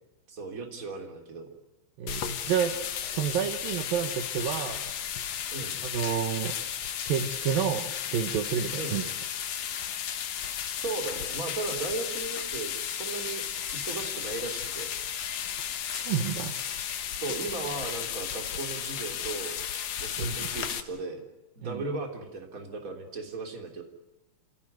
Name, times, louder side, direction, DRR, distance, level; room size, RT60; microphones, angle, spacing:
voice 1, 0.3-1.5 5.5-5.8 8.8-9.0 10.8-13.4 13.7-14.9 17.2-19.6 20.0-21.2 21.6-23.8, right 3 dB, 20° right, 3 dB, 3.1 m, -36 dB
voice 2, 2.0-2.8 3.1-4.9 5.8-6.5 7.1-9.1 15.9-16.6 20.2-20.5 21.6-21.8, right 8 dB, 65° right, 6 dB, 2.6 m, -30 dB
sound 1, 2.1-20.8, left 9 dB, 90° left, 1.4 m, -34 dB
28.0 x 17.5 x 9.4 m, 0.94 s
omnidirectional pair, 5.1 m